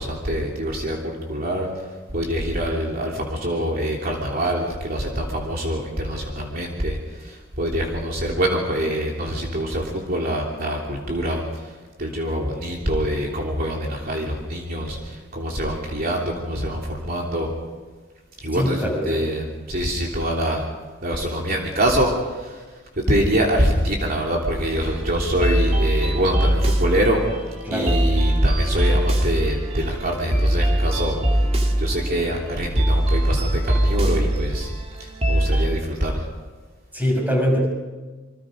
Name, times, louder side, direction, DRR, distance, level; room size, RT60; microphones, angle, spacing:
voice 1, 0.0-1.7 2.1-11.6 12.0-17.5 18.4-20.6 21.0-22.6 23.0-27.2 27.7-31.1 31.8-34.7 35.0-36.3, equal, 45° right, -1 dB, 3.2 m, -25 dB
voice 2, 18.5-19.2 27.6-28.0 36.9-37.7, equal, 10° right, 0 dB, 6.1 m, -22 dB
sound 1, 24.7-35.7, right 1 dB, 30° right, 2.4 m, -22 dB
28.0 x 25.0 x 5.3 m, 1.3 s
head